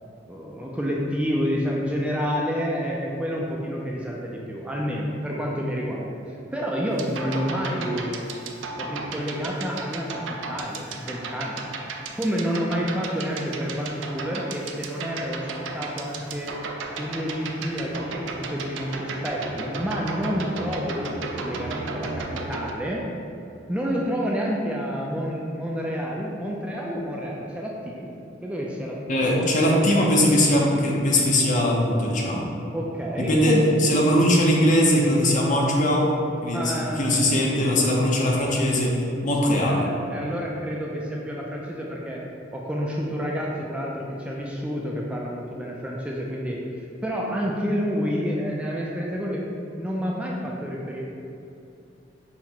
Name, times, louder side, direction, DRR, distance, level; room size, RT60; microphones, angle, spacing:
voice 1, 0.3-8.2 8.8-11.6 12.2-16.5 16.9-23.0 23.7-28.1 28.4-30.1 32.7-33.9 36.5-37.3 39.4-42.2 42.5-46.6 47.0-49.4 49.8-51.0, equal, 5° right, -3 dB, 0.3 m, -29 dB
sound 1, 6.9-22.7, right 3 dB, 80° right, 0.4 m, -35 dB
voice 2, 29.1-32.5 33.3-36.1 36.4-39.8, left 1 dB, 45° left, -2 dB, 0.7 m, -20 dB
5.8 x 2.1 x 4.4 m, 2.7 s
head